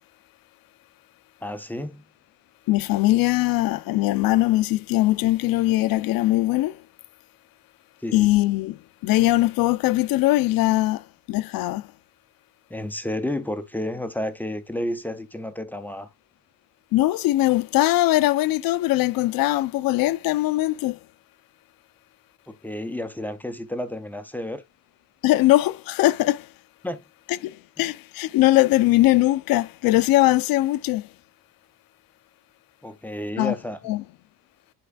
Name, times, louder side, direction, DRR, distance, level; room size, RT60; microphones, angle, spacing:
voice 1, 1.4-2.0 8.0-8.3 12.7-16.1 22.5-24.6 26.8-27.0 32.8-34.0, left 1 dB, 5° left, 0.3 m, -31 dB
voice 2, 2.7-6.8 8.1-11.9 16.9-21.0 25.2-26.5 27.4-31.1 33.4-33.5 33.8-34.0, left 17 dB, 60° left, 0.5 m, -21 dB
9.9 x 4.4 x 2.2 m
cardioid pair, 175°, 39 cm